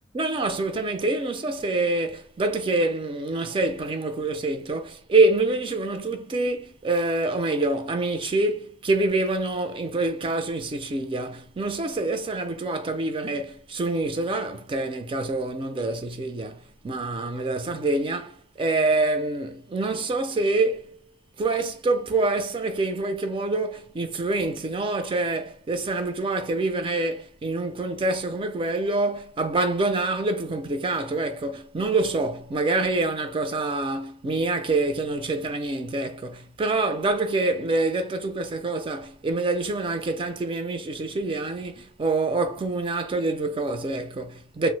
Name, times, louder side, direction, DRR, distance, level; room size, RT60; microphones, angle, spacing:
voice 1, 0.1-20.9 21.4-44.7, right 2 dB, 25° right, 0.4 m, -26 dB
2.8 x 2.0 x 3.1 m
head